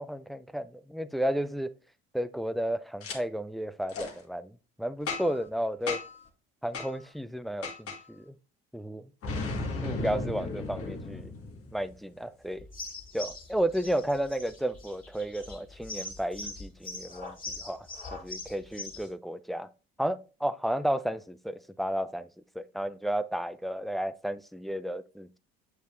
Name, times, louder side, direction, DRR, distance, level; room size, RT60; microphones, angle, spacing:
voice 1, 0.0-1.7 2.1-6.0 6.6-8.3 8.7-9.0 9.8-11.3 11.7-12.7 13.1-19.7 20.0-22.3 22.6-25.4, right 1 dB, ahead, 0.4 m, -33 dB
Boom, 3.0-3.2 3.9-4.1 5.1-5.5 5.9-6.2 6.7-6.9 7.6-8.0 9.2-11.9, left 3 dB, 45° left, 1.8 m, -35 dB
sound 1, 12.6-19.1, left 2 dB, 25° left, 2.7 m, -42 dB
8.1 x 4.6 x 2.6 m
hypercardioid pair, 60°, 31 cm